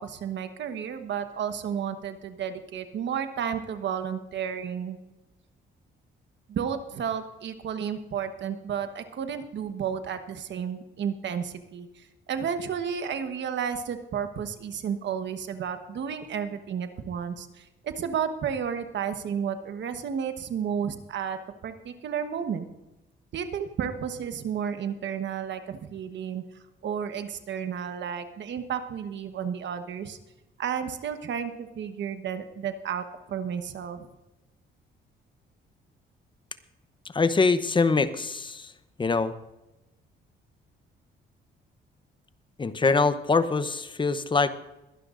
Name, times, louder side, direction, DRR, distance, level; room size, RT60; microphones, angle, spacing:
voice 1, 0.0-5.0 6.5-11.9 12.3-22.7 23.3-26.4 26.8-30.2 30.6-34.1, right 7 dB, 65° right, 8 dB, 1.2 m, -32 dB
voice 2, 37.1-38.7 39.0-39.3 42.6-44.5, left 4 dB, 25° left, 13 dB, 0.8 m, -24 dB
22.0 x 11.5 x 2.6 m, 0.98 s
cardioid pair, 90°, 20 cm